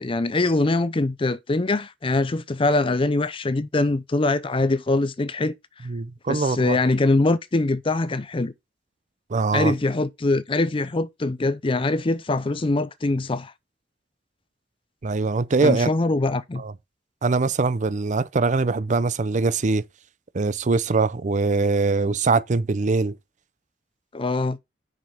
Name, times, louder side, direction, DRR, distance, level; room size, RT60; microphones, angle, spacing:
voice 1, 0.0-5.5 6.3-8.5 9.5-13.5 15.6-16.6 24.1-24.6, left 2 dB, 30° left, 0.5 m, -23 dB
voice 2, 5.9-6.8 9.3-9.7 15.0-15.9 16.6-16.7 17.2-19.8 20.3-23.2, right 3 dB, 40° right, 0.5 m, -22 dB
6.3 x 5.0 x 5.5 m
head